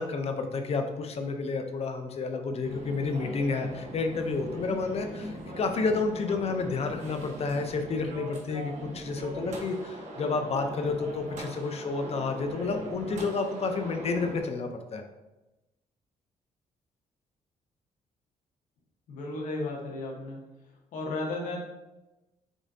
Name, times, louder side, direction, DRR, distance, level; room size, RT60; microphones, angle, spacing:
voice 1, 0.0-15.0, left 4 dB, 50° left, 6 dB, 0.6 m, -30 dB
sound 1, 2.6-14.4, right 1 dB, 60° right, 1.1 m, -40 dB
voice 2, 19.1-20.4 20.9-21.6, left 2 dB, 75° left, -1 dB, 1.2 m, -34 dB
5.2 x 3.6 x 2.7 m, 1.0 s
cardioid pair, 85°, 13 cm